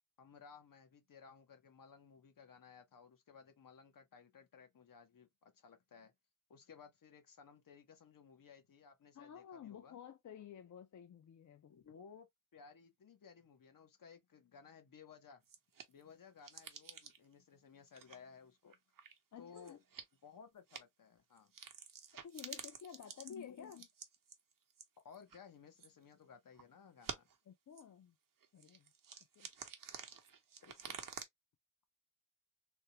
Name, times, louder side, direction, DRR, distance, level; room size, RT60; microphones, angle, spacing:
voice 1, 0.2-6.1 6.5-10.0 11.7-15.4 15.9-18.8 19.4-19.8 20.2-21.5 23.3-23.9 25.0-27.3 30.6-31.0, left 6 dB, 80° left, 0.9 m, -58 dB
voice 2, 9.1-11.7 19.3-19.8 22.2-23.8 27.5-28.2 28.5-28.9 29.4-29.5, left 8 dB, 60° left, 0.4 m, -52 dB
sound 1, 15.4-16.0 16.4-17.3 17.9-18.2 18.7-19.2 19.5-20.1 20.7-20.8 21.4-25.4 25.8-26.1 26.6-26.7 27.0-27.4 27.7-27.8 28.4-31.2, right 6 dB, 80° right, 0.7 m, -50 dB
3.5 x 2.2 x 2.7 m
wide cardioid pair, 120°, 32 cm